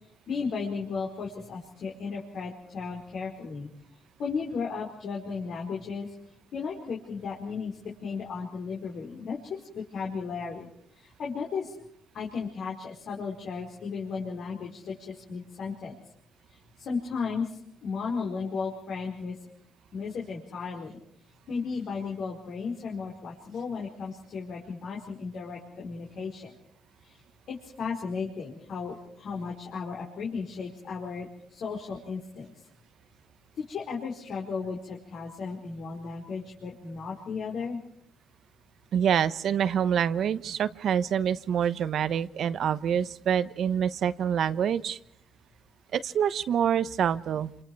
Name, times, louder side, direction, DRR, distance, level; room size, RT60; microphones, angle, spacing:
voice 1, 0.3-3.7 4.2-6.1 6.5-10.7 10.9-11.7 12.1-15.9 16.5-19.4 19.9-21.0 21.5-26.5 27.0-27.2 27.5-32.6 33.5-37.8, left 5 dB, 65° left, -2 dB, 4.7 m, -35 dB
voice 2, 38.9-45.0 45.9-47.5, right 8 dB, 65° right, 14 dB, 1.0 m, -26 dB
27.5 x 27.0 x 4.7 m, 0.67 s
cardioid pair, 90°, 0 cm